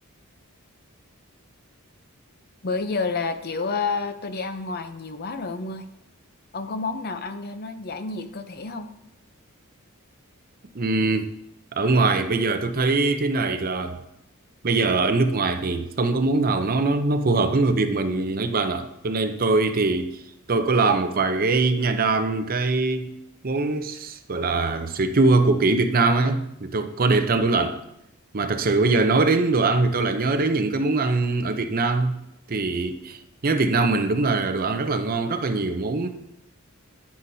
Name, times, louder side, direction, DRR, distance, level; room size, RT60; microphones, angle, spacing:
voice 1, 2.6-5.8 6.5-8.9, left 4 dB, 45° left, 0.6 m, -29 dB
voice 2, 10.7-11.3 11.8-14.0 14.6-20.2 20.5-23.1 23.4-27.8 28.3-32.2 32.5-36.1, right 3 dB, 45° right, 0.6 m, -22 dB
9.7 x 9.5 x 2.7 m
head